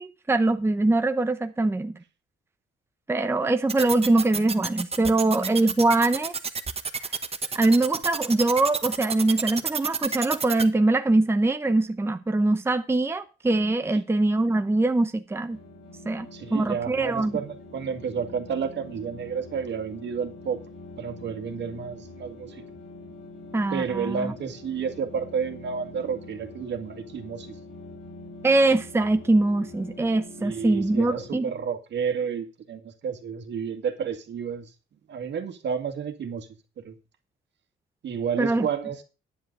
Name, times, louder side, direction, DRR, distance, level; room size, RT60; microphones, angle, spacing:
voice 1, 0.0-1.9 3.1-6.3 7.5-15.6 16.1-17.3 23.5-24.3 28.4-31.5 38.4-38.7, right 2 dB, 10° right, 0.8 m, -23 dB
sound 1, 3.7-10.6, right 5 dB, 30° right, 1.2 m, -29 dB
sound 2, 15.5-31.3, left 2 dB, 70° left, 5.9 m, -44 dB
voice 2, 16.3-20.6 21.0-22.6 23.7-27.6 30.4-34.7 35.1-36.5 36.8-37.0 38.0-39.0, right 7 dB, 60° right, 2.0 m, -31 dB
10.0 x 7.8 x 5.3 m
cardioid pair, 90°, 20 cm